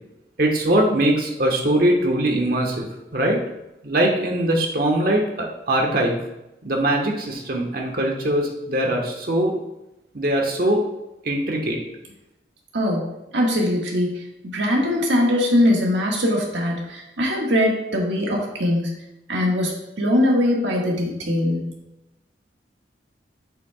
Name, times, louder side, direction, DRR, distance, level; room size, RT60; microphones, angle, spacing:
voice 1, 0.4-2.8 3.1-3.4 3.8-6.2 6.6-9.5 10.1-10.8 11.2-11.8, right 1 dB, 55° right, 1 dB, 1.3 m, -21 dB
voice 2, 12.7-14.1 14.5-19.0 19.3-21.7, left 1 dB, 85° right, -1 dB, 1.7 m, -21 dB
8.5 x 7.0 x 2.4 m, 0.93 s
head